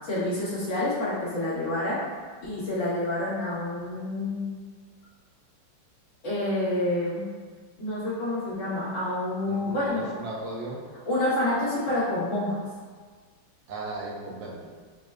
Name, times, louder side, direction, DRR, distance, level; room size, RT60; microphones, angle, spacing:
voice 1, 0.0-2.0 2.4-4.5 6.2-7.2 7.8-10.0 11.0-12.6, left 1 dB, 85° left, -12 dB, 2.4 m, -28 dB
voice 2, 9.5-10.8 13.7-14.5, right 2 dB, 90° right, -3 dB, 1.5 m, -36 dB
6.1 x 2.2 x 2.4 m, 1.5 s
omnidirectional pair, 2.0 m